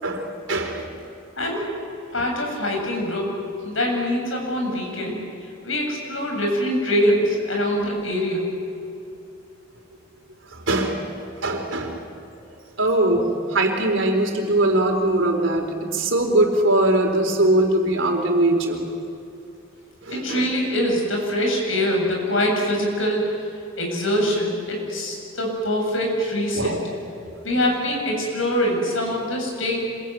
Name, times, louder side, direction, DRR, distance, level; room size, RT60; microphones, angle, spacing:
voice 1, 0.0-0.9 2.2-2.3 10.5-11.0 11.4-12.0 12.8-18.9 20.0-20.5 26.5-26.8, right 1 dB, 70° right, 3 dB, 4.1 m, -21 dB
voice 2, 1.4-1.7 2.1-3.4 3.6-5.2 5.6-8.5 18.5-18.6 20.1-23.4 23.8-26.8 27.4-29.8, equal, 70° left, 1 dB, 7.7 m, -24 dB
26.5 x 23.0 x 9.4 m, 2.7 s
head